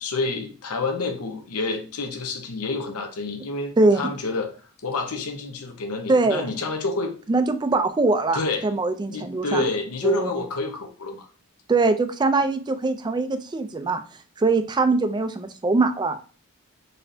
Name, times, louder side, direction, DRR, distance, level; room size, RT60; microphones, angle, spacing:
voice 1, 0.0-4.5 4.8-7.1 8.3-8.7 9.1-11.3, left 3 dB, 80° left, 4 dB, 0.8 m, -28 dB
voice 2, 3.8-4.1 6.1-6.6 7.3-9.6 10.0-10.3 11.7-14.0 14.4-16.2, right 3 dB, 20° right, 9 dB, 0.3 m, -22 dB
4.1 x 3.3 x 2.6 m, 0.38 s
head